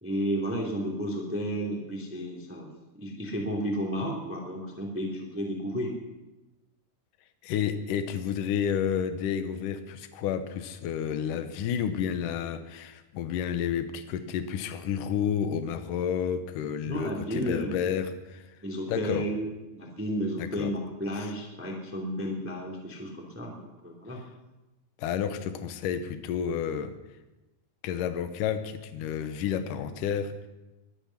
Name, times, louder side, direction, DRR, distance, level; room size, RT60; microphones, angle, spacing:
voice 1, 0.0-2.7 2.9-5.9 16.9-17.8 18.6-19.5 19.7-24.2, equal, 5° right, -1 dB, 1.9 m, -32 dB
voice 2, 7.4-18.4 18.9-19.2 20.4-20.7 21.2-21.3 25.0-26.9 27.8-30.5, left 8 dB, 70° left, 9 dB, 2.3 m, -30 dB
22.0 x 9.1 x 5.9 m, 1.1 s
omnidirectional pair, 4.4 m